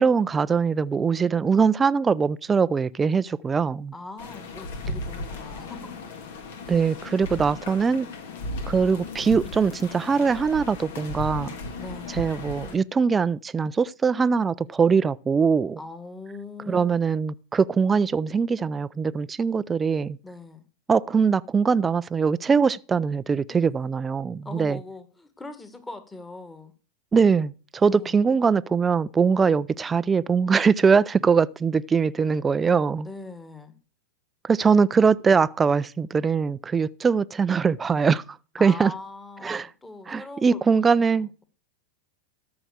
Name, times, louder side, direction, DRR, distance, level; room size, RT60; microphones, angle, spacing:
voice 1, 0.0-3.9 6.7-8.1 8.7-11.6 12.1-15.8 16.7-20.2 20.9-24.8 27.1-33.1 34.4-38.2 38.6-38.9 39.4-39.7 40.1-41.3, right 5 dB, 20° right, 0.4 m, -22 dB
voice 2, 3.9-5.9 11.8-12.2 15.8-16.9 20.2-20.7 23.5-23.6 24.4-26.7 27.8-28.2 33.0-33.8 38.6-41.4, left 3 dB, 10° left, 1.8 m, -41 dB
sound 1, 4.2-12.7, left 2 dB, 70° left, 2.4 m, -36 dB
13.0 x 6.0 x 6.5 m
hypercardioid pair, 100°, 0 cm